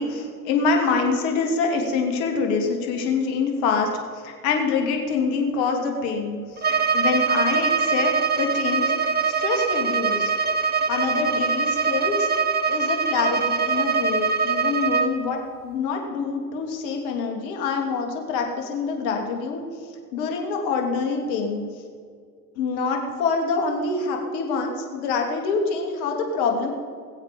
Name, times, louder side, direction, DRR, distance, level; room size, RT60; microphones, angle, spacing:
voice 1, 0.0-8.1 8.4-8.9 9.2-10.3 10.9-12.3 12.7-19.6 20.1-21.6 22.6-26.7, left 4 dB, 65° left, 2 dB, 2.9 m, -25 dB
Bowed string instrument, 6.6-15.2, right 5 dB, 20° right, 1.2 m, -23 dB
21.5 x 8.2 x 5.3 m, 2.1 s
hypercardioid pair, 85°, 44 cm